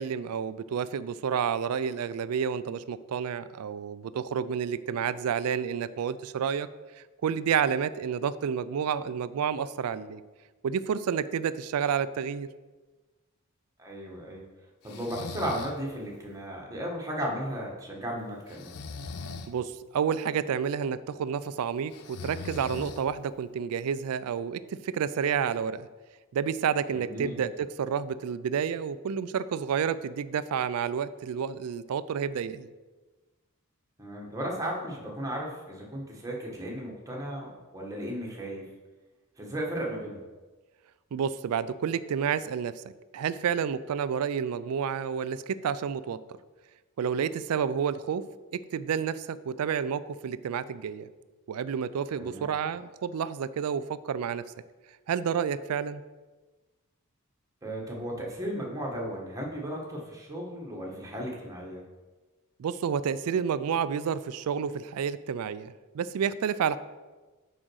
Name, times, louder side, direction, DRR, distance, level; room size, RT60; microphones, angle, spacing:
voice 1, 0.0-6.7 7.2-10.2 10.6-12.5 19.5-25.9 26.3-32.7 41.1-42.8 43.1-46.2 47.0-48.2 48.5-51.1 51.5-54.4 55.1-56.0 62.6-66.8, right 7 dB, 80° right, 16 dB, 0.3 m, -30 dB
voice 2, 13.8-14.4 14.8-18.8 26.9-27.4 34.0-38.6 39.4-40.2 52.2-52.5 57.6-61.8, equal, 15° right, -2 dB, 1.4 m, -35 dB
Breathing, 14.9-15.8 18.5-19.5 21.9-23.3, left 4 dB, 85° left, 0.6 m, -40 dB
6.2 x 5.0 x 6.3 m, 1.3 s
head